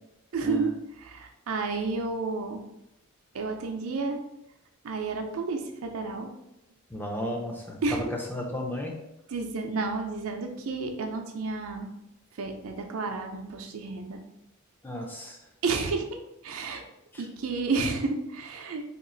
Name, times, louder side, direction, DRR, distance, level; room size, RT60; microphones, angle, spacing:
voice 1, 0.3-0.7 1.0-2.6 3.3-4.2 4.8-6.3 7.8-8.0 9.3-11.9 12.4-14.2 15.6-16.8 17.2-18.8, right 4 dB, 80° right, 4 dB, 0.5 m, -31 dB
voice 2, 6.9-8.0 8.3-8.9 14.8-15.4 17.1-17.2, left 1 dB, 10° left, 0 dB, 0.4 m, -34 dB
2.9 x 2.4 x 3.8 m, 0.87 s
head